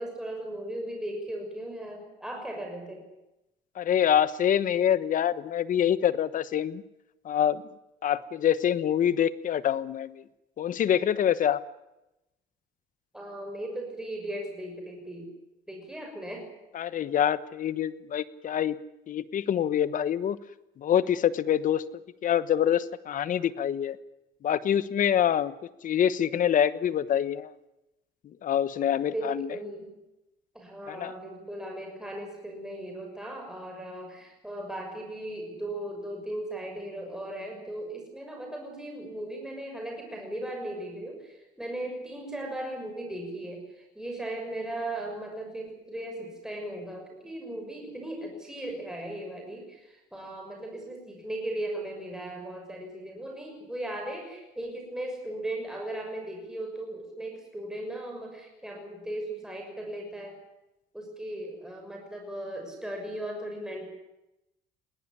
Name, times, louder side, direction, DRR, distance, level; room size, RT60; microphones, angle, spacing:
voice 1, 0.0-3.0 13.1-15.3 15.7-16.5 29.1-30.0 30.5-60.4 60.9-63.9, right 1 dB, 5° right, 1 dB, 6.4 m, -37 dB
voice 2, 3.8-6.8 7.2-7.6 8.0-10.2 10.6-11.6 16.7-18.7 19.1-20.4 20.8-21.8 22.2-24.0 24.4-25.5 25.8-27.5 28.4-29.5 30.9-31.1, left 9 dB, 50° left, 16 dB, 1.2 m, -25 dB
21.5 x 18.0 x 10.0 m, 0.93 s
cardioid pair, 110°, 17 cm